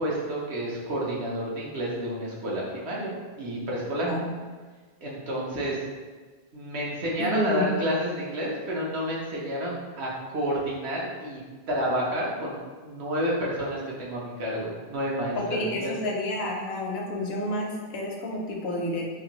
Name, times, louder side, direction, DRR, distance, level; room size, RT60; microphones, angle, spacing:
voice 1, 0.0-3.1 3.4-4.1 5.0-5.8 6.5-11.4 11.7-15.9, equal, 80° right, -4 dB, 1.1 m, -30 dB
voice 2, 7.2-7.7 15.4-19.1, left 1 dB, 75° left, 0 dB, 0.8 m, -29 dB
3.1 x 2.5 x 2.8 m, 1.4 s
omnidirectional pair, 1.1 m